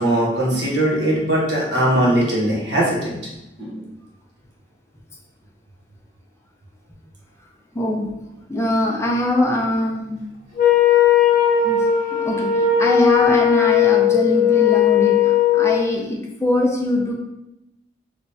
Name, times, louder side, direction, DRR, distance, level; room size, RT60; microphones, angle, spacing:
voice 1, 0.0-3.2 3.6-3.8, right 1 dB, 75° right, -4 dB, 1.1 m, -20 dB
voice 2, 1.8-2.2 7.7-8.1 8.5-10.3 11.6-17.1, left 1 dB, 15° left, 0 dB, 0.4 m, -23 dB
Wind instrument woodwind instrument, 10.6-15.8, left 9 dB, 55° left, 0.9 m, -17 dB
3.3 x 3.0 x 2.7 m, 0.92 s
head